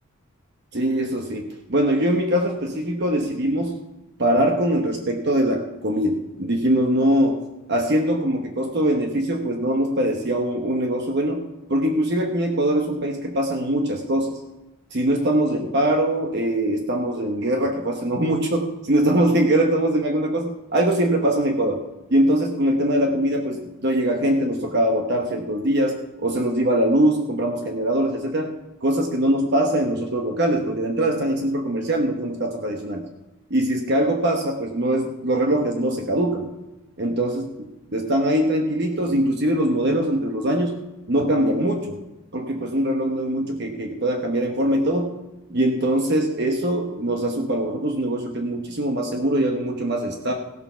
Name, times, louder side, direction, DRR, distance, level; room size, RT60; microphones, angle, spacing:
voice 1, 0.7-3.8 4.2-7.4 7.7-14.4 14.9-21.8 22.1-28.5 28.8-33.0 33.5-36.5 37.0-37.5 37.9-40.8 41.1-42.0 42.3-45.1 45.5-50.3, right 1 dB, 50° right, 3 dB, 1.0 m, -22 dB
16.0 x 6.8 x 5.6 m, 1.0 s
head